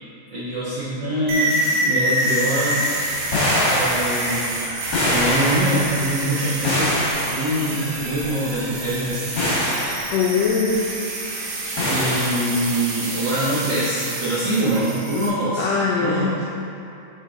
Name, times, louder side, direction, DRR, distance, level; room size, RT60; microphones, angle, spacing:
voice 1, 0.3-2.8 3.7-4.5 5.0-6.9 7.3-9.4 11.7-16.3, right 1 dB, 50° right, -11 dB, 1.5 m, -24 dB
sound 1, 1.3-15.3, right 1 dB, 75° right, 2.2 m, -27 dB
sound 2, 3.2-6.0 6.6-7.5 8.0-8.2 8.9-9.1 9.4-10.2 11.8-12.6, left 1 dB, 45° left, 1.8 m, -23 dB
voice 2, 10.1-10.8 11.4-11.5 15.6-16.5, left 5 dB, 75° left, -4 dB, 1.6 m, -21 dB
6.5 x 5.1 x 3.9 m, 2.6 s
omnidirectional pair, 3.4 m